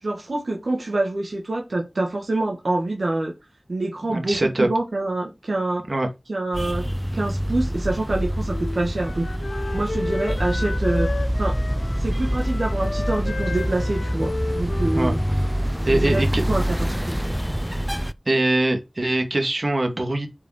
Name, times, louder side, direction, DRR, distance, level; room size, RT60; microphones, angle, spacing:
voice 1, 0.0-3.3 3.7-5.9 6.3-9.3 9.7-11.6 12.0-15.2 15.9-17.3, right 2 dB, 75° right, 2.0 m, -26 dB
voice 2, 4.1-4.7 5.9-6.1 15.0-15.1 15.9-16.4 18.3-20.3, right 2 dB, 55° right, 2.3 m, -22 dB
sound 1, 6.5-18.1, equal, 5° right, 0.5 m, -25 dB
Wind instrument woodwind instrument, 8.5-16.2, left 3 dB, 90° left, 1.2 m, -33 dB
6.9 x 5.3 x 6.5 m
wide cardioid pair, 50°, 0 cm